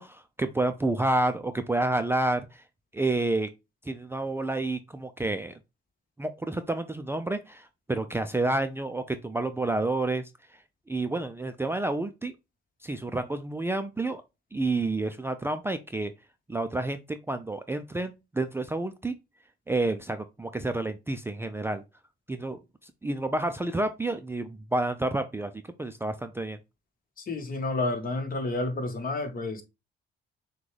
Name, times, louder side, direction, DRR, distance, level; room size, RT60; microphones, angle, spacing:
voice 1, 0.0-2.6 2.9-3.5 3.9-5.5 6.2-10.2 10.9-12.3 12.8-14.2 14.5-16.1 16.5-19.1 19.7-21.8 22.3-25.5 25.8-26.6, right 2 dB, 10° right, 0.4 m, -29 dB
voice 2, 27.3-29.6, left 2 dB, 45° left, 1.3 m, -30 dB
6.1 x 2.3 x 3.2 m
cardioid pair, 90°, 20 cm